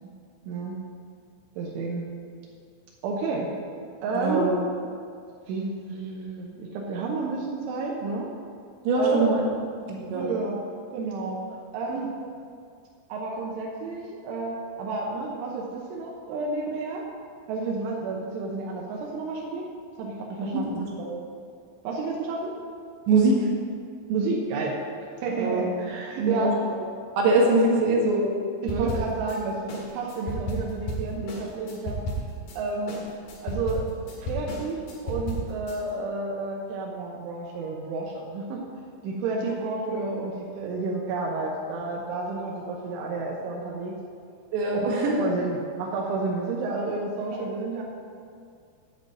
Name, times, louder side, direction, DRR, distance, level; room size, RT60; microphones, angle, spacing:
voice 1, 0.5-0.8 1.6-2.1 3.0-3.5 4.0-4.6 5.5-8.3 9.0-9.3 10.1-10.6 10.9-11.4 11.7-12.1 13.1-17.0 17.5-19.7 20.0-20.8 21.8-22.5 24.1-24.8 25.2-26.6 28.6-32.0 32.6-33.0 33.4-33.8 34.2-38.6 39.0-43.9 44.7-47.8, right 3 dB, 90° right, -2 dB, 3.5 m, -30 dB
voice 2, 4.1-4.5 8.9-9.5 9.9-10.2 20.4-20.9 23.1-23.5 25.4-25.6 26.2-26.5 27.2-28.3 28.7-28.9 39.4-39.5 39.9-40.0 44.5-45.2 47.3-47.4, right 2 dB, 75° right, -3 dB, 3.9 m, -23 dB
sound 1, 28.7-29.4 29.7-32.6 32.9-35.8, right 1 dB, 60° left, 2.5 m, -33 dB
9.1 x 5.4 x 7.6 m, 2.3 s
omnidirectional pair, 5.4 m